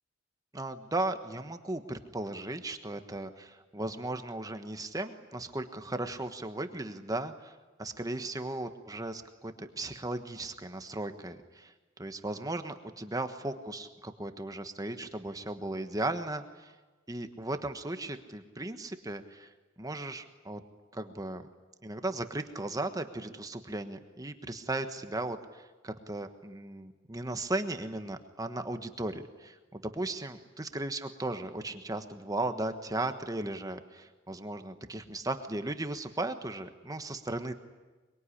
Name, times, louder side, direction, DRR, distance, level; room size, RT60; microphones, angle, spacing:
voice 1, 0.5-16.7 17.1-19.5 19.8-20.6 20.9-21.5 21.8-37.5, right 2 dB, 20° right, 8 dB, 1.3 m, -36 dB
23.0 x 23.0 x 10.0 m, 1.2 s
head